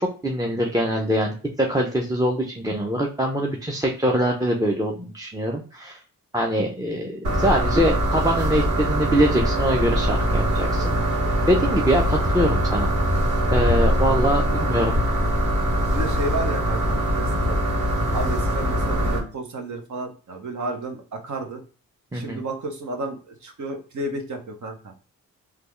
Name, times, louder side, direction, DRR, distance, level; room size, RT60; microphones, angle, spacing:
voice 1, 0.0-6.0 6.3-11.0 11.5-12.9 13.5-15.0 22.1-22.4, equal, 10° right, 1 dB, 0.6 m, -23 dB
sound 1, 7.2-19.2, equal, 80° right, 1.5 m, -22 dB
voice 2, 14.3-14.7 15.9-17.6 18.1-21.6 22.1-24.9, right 2 dB, 55° right, 4 dB, 1.0 m, -32 dB
3.3 x 2.4 x 3.1 m, 0.38 s
supercardioid pair, 50°, 36 cm